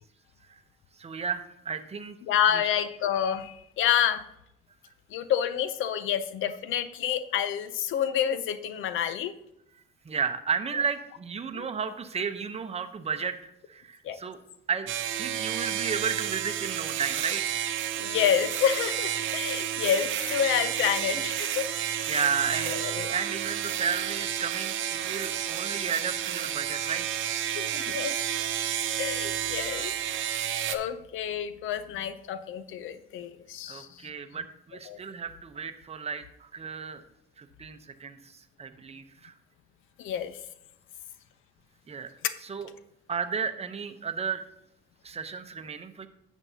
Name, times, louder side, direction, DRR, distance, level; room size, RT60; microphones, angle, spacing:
voice 1, 1.0-2.2 2.5-2.8 10.0-14.4 14.7-14.9 15.2-17.7 19.5-19.6 22.1-27.1 33.7-37.0 37.4-39.3 41.9-42.1 42.4-42.7 43.1-44.5 45.0-46.1, right 6 dB, 30° right, 7 dB, 0.8 m, -33 dB
voice 2, 2.3-4.3 5.1-9.3 11.5-11.7 14.0-14.2 18.0-21.7 22.0-22.1 22.7-23.1 27.6-28.1 29.0-29.9 30.7-33.9 34.9-35.0 40.0-40.4, left 9 dB, 80° left, 13 dB, 0.6 m, -28 dB
sound 1, 14.9-30.8, right 10 dB, 75° right, 0.7 m, -31 dB
10.5 x 7.2 x 2.8 m, 0.81 s
cardioid pair, 90°, 20 cm